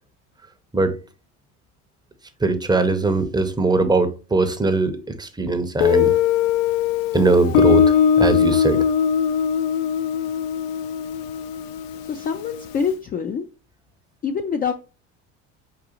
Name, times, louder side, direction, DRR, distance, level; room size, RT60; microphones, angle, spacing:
voice 1, 2.4-6.2 7.1-8.8, right 3 dB, 10° right, 0.6 m, -20 dB
Guitar, 5.8-12.5, left 8 dB, 75° left, 0.6 m, -20 dB
voice 2, 12.1-13.5 14.2-14.7, left 6 dB, 25° left, 0.3 m, -25 dB
4.6 x 3.8 x 2.9 m
hypercardioid pair, 80°, 39 cm